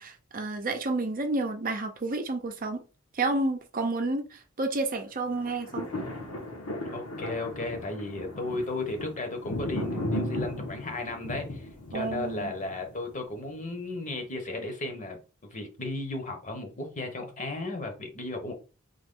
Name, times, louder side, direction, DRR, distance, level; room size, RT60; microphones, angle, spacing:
voice 1, 0.0-2.8 3.1-5.9 11.9-12.5, right 2 dB, 40° right, 0.6 m, -30 dB
sound 1, 5.3-13.6 14.1-14.2, left 1 dB, 70° left, 1.4 m, -36 dB
voice 2, 6.9-15.2 15.5-18.5, left 2 dB, 35° left, 1.0 m, -35 dB
3.8 x 3.1 x 3.7 m
head